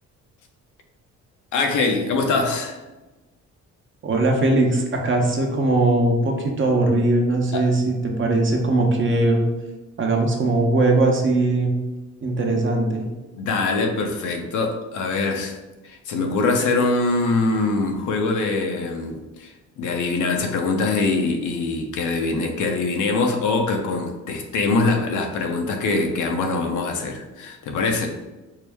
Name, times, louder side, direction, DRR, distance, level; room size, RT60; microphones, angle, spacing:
voice 1, 1.5-2.8 7.5-7.7 13.3-15.6 15.8-28.1, left 3 dB, 80° left, 3 dB, 0.7 m, -23 dB
voice 2, 4.0-9.4 10.0-11.7 12.2-13.0, right 2 dB, 40° right, 2 dB, 0.8 m, -20 dB
4.6 x 2.1 x 3.4 m, 1.1 s
cardioid pair, 90°, 30 cm